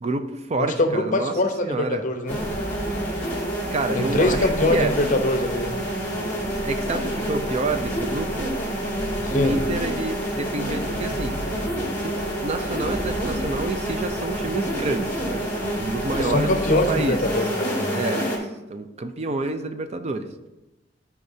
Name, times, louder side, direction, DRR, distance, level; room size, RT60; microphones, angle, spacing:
voice 1, 0.0-1.4 1.6-2.0 3.7-4.9 6.6-8.5 9.3-11.4 12.0-16.6 16.9-17.4 17.9-18.3 18.7-20.3, right 2 dB, 35° right, 8 dB, 0.5 m, -28 dB
voice 2, 0.6-2.4 3.9-5.7 9.2-9.6 16.2-17.9, left 2 dB, 45° left, 6 dB, 0.8 m, -23 dB
sound 1, 2.3-18.4, equal, 10° left, 2.2 m, -28 dB
sound 2, 2.3-17.2, equal, 85° right, 1.1 m, -35 dB
12.5 x 4.7 x 2.7 m, 1.0 s
head